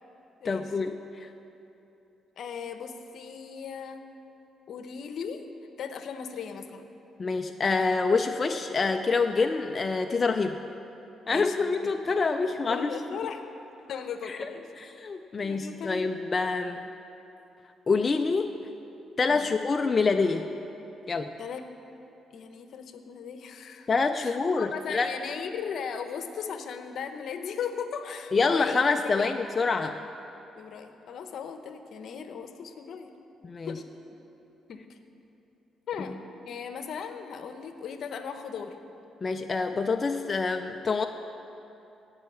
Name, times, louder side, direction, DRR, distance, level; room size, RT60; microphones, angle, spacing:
voice 1, 0.4-1.3 7.2-10.6 11.3-13.0 14.3-14.5 14.8-16.9 17.9-18.5 19.2-20.5 21.1-21.3 23.9-25.1 28.3-29.9 33.4-33.7 39.2-41.1, left 4 dB, 35° left, 6 dB, 0.4 m, -26 dB
voice 2, 2.4-4.0 4.7-5.4 5.8-6.9 11.3-11.6 11.8-11.9 12.7-13.4 13.9-14.7 15.4-16.1 19.3-19.5 21.4-21.6 22.3-23.9 24.1-29.3 29.7-29.9 30.2-33.1 33.6-33.8 34.7-35.0 35.9-36.2 36.4-38.7, left 7 dB, 65° left, 8 dB, 0.9 m, -37 dB
17.0 x 5.7 x 7.2 m, 2.9 s
cardioid pair, 90°, 0 cm